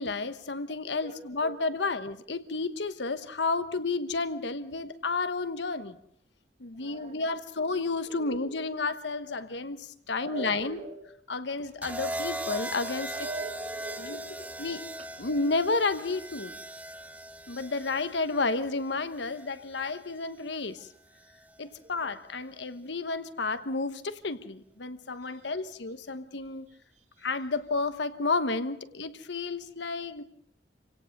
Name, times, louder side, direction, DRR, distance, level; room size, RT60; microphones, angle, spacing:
voice 1, 0.0-6.0 6.6-10.8 11.3-13.3 14.0-14.2 14.6-14.8 15.2-16.5 17.5-20.9 21.6-26.7 27.2-30.2, left 3 dB, 75° left, 11 dB, 1.1 m, -31 dB
voice 2, 6.8-7.2 8.2-8.4 10.2-10.9 13.1-14.6, right 3 dB, 40° right, 2 dB, 3.4 m, -41 dB
sound 1, 11.8-19.9 21.2-21.5, right 1 dB, 10° right, 1.0 m, -39 dB
27.0 x 17.5 x 6.6 m, 0.67 s
head